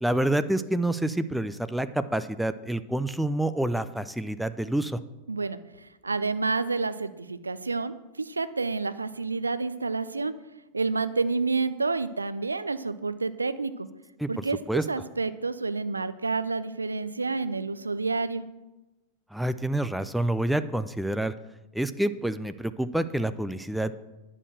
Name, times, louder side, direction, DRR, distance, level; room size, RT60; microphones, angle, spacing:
voice 1, 0.0-5.0 14.2-14.8 19.3-21.3 21.7-23.9, right 1 dB, ahead, 12 dB, 0.4 m, -28 dB
voice 2, 5.3-10.3 10.7-13.9 14.3-18.5, right 4 dB, 80° right, 13 dB, 0.4 m, -29 dB
9.8 x 6.6 x 6.3 m, 1.0 s
figure-of-eight pair, 90°, 0 cm